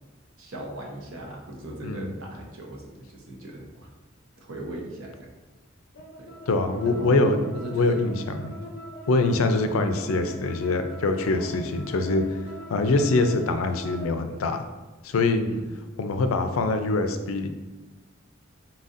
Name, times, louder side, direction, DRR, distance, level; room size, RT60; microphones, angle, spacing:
voice 1, 0.4-3.9 4.4-5.3 6.2-6.3 6.8-7.2 7.5-8.0 8.3-8.6 11.3-11.5 15.5-15.6, right 1 dB, 75° right, -1 dB, 0.9 m, -39 dB
voice 2, 1.8-2.1 6.5-7.4 7.7-8.5 9.1-12.4 12.7-14.6 15.0-15.4 16.0-17.5, left 3 dB, 90° left, 7 dB, 0.4 m, -24 dB
sound 1, 5.9-14.2, equal, 55° left, 0.7 m, -42 dB
4.1 x 4.0 x 2.5 m, 1.1 s
head